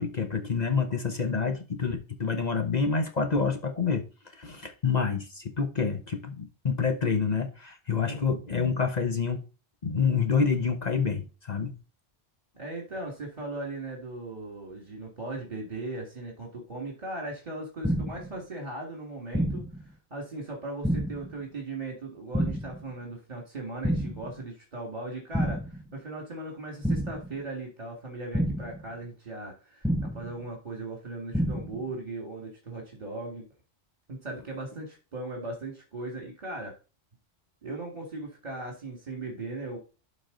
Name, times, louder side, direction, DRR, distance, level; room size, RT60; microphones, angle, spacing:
voice 1, 0.0-4.0 4.3-9.4 9.8-11.7, left 5 dB, 40° left, 1.0 m, -27 dB
voice 2, 12.6-29.9 30.1-33.4 34.1-36.7 37.6-39.8, right 2 dB, 40° right, 2.2 m, -38 dB
sound 1, 17.8-18.3 19.3-19.8 20.8-21.3 22.3-22.8 23.8-24.3 25.3-25.8 26.8-27.3 28.3-28.8 29.8-30.3 31.3-31.8, equal, ahead, 0.4 m, -28 dB
12.0 x 4.3 x 3.9 m
omnidirectional pair, 1.1 m